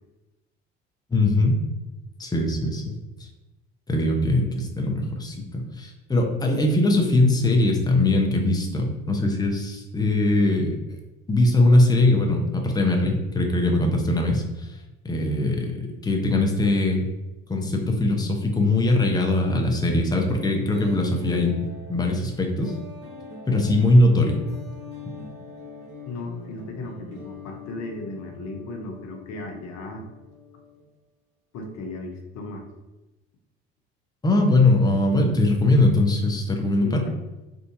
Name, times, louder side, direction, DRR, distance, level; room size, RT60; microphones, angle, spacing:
voice 1, 1.1-1.6 2.2-2.9 3.9-11.0 11.3-14.7 15.0-17.1 17.5-21.6 21.9-22.8 23.5-24.4 34.2-37.0, left 2 dB, 10° left, 1 dB, 0.7 m, -21 dB
sound 1, 20.4-30.9, left 6 dB, 80° right, 1.3 m, -43 dB
voice 2, 26.0-30.1 31.5-32.6 36.8-37.1, left 2 dB, 55° left, 3 dB, 0.8 m, -35 dB
3.5 x 2.6 x 2.7 m, 1.0 s
hypercardioid pair, 55°, 32 cm